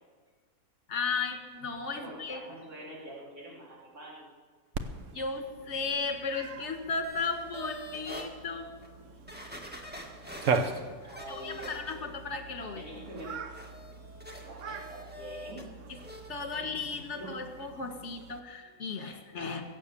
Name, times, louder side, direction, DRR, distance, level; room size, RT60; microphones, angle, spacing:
voice 1, 0.9-2.4 5.1-8.7 11.3-12.9 15.9-16.0 16.3-19.6, left 4 dB, 50° left, 5 dB, 1.9 m, -35 dB
voice 2, 2.0-4.3 11.0-12.1 12.7-13.3 14.4-15.6 17.1-17.3, right 1 dB, 75° right, -5 dB, 4.0 m, -45 dB
Cat, 4.7-18.4, right 5 dB, 60° right, 1.2 m, -39 dB
sound 1, 7.0-8.3 8.8-8.9 9.3-12.2 12.6-15.7 15.9-16.3 16.6-16.7, equal, 5° right, 1.7 m, -46 dB
22.5 x 8.4 x 7.0 m, 1.5 s
omnidirectional pair, 1.6 m